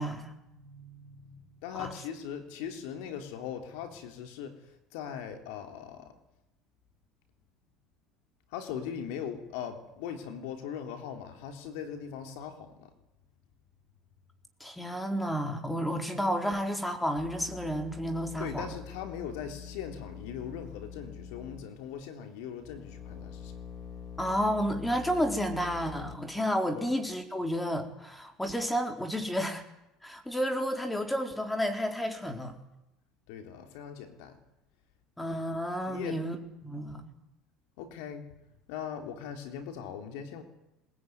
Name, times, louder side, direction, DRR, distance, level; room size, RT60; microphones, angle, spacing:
voice 1, 0.0-0.3 1.8-1.9 14.6-18.7 24.2-29.6 30.0-32.6 35.2-36.4 36.6-37.1, equal, 5° left, 5 dB, 4.1 m, -31 dB
voice 2, 0.5-4.5 4.9-6.1 8.5-12.9 18.4-23.6 26.7-26.9 33.3-34.4 35.9-36.2 37.8-38.3 38.7-40.4, left 8 dB, 75° left, 6 dB, 3.6 m, -40 dB
sound 1, 17.2-22.0 22.6-26.2, left 7 dB, 40° left, 4.2 m, -45 dB
21.5 x 20.0 x 9.6 m, 0.91 s
supercardioid pair, 95°, 0 cm